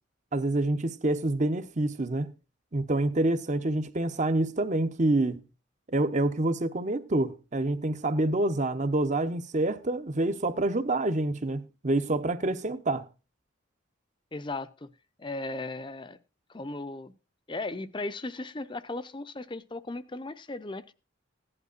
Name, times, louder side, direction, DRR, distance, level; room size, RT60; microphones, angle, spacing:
voice 1, 0.3-2.3 2.7-5.4 5.9-13.0, right 2 dB, 40° right, 0.8 m, -27 dB
voice 2, 14.3-14.9 15.2-16.2 16.5-17.1 17.5-20.9, left 2 dB, 25° left, 0.6 m, -36 dB
16.0 x 11.0 x 2.5 m
head